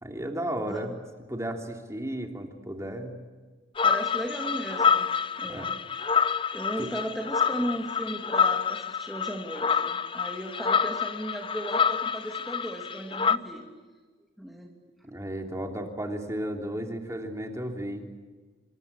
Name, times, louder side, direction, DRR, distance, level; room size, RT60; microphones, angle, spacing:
voice 1, 0.0-0.9 1.3-3.2 5.5-5.7 6.8-6.9 15.0-18.0, right 1 dB, 15° right, 3 dB, 3.2 m, -34 dB
voice 2, 0.6-1.0 3.8-5.1 5.4-5.7 6.5-13.6 14.4-14.7, right 1 dB, ahead, 0 dB, 2.7 m, -36 dB
sound 1, 3.8-13.4, left 6 dB, 30° left, 0.7 m, -27 dB
27.5 x 25.5 x 8.4 m, 1.4 s
head